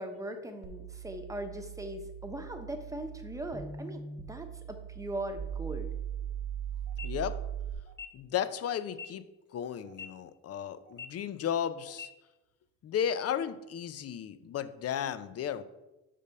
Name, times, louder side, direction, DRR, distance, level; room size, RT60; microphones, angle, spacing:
voice 1, 0.0-5.9, right 1 dB, 10° right, 6 dB, 0.9 m, -40 dB
sound 1, 0.6-7.7, right 8 dB, 85° right, 1.3 m, -40 dB
sound 2, 6.9-7.1 7.9-8.1 8.9-9.1 9.9-10.1 10.9-11.1 11.9-12.1, left 6 dB, 35° left, 1.1 m, -43 dB
voice 2, 7.0-7.4 8.1-9.2 9.5-12.1 12.8-15.6, left 9 dB, 55° left, 12 dB, 0.5 m, -34 dB
5.2 x 5.1 x 5.5 m, 1.0 s
cardioid pair, 90°, 30 cm